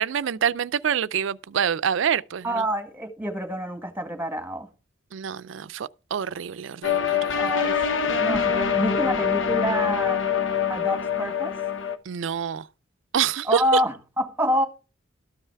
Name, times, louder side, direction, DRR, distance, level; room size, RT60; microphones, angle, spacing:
voice 1, 0.0-2.6 5.1-7.5 12.1-12.7 13.1-13.8, right 8 dB, 75° right, 0.4 m, -26 dB
voice 2, 2.4-4.7 7.3-10.2 10.7-11.5 13.4-14.7, equal, 10° right, 1.6 m, -27 dB
sound 1, 6.8-12.0, left 7 dB, 75° left, 1.1 m, -24 dB
13.0 x 5.6 x 4.6 m
head